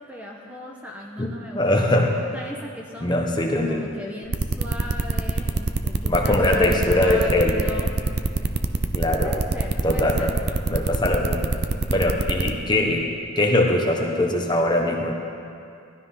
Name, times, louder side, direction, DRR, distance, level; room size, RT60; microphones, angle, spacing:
voice 1, 0.0-1.6 2.1-3.2 3.6-8.0 9.2-10.3, equal, 5° right, -1 dB, 1.1 m, -37 dB
voice 2, 1.5-2.1 3.0-3.8 6.1-7.6 8.9-9.3 9.8-10.3 10.7-11.5 11.9-13.1 13.4-15.1, left 1 dB, 20° left, 1 dB, 1.3 m, -21 dB
sound 1, 4.3-12.5, right 3 dB, 50° right, 0.7 m, -24 dB
17.5 x 12.5 x 5.7 m, 2.4 s
head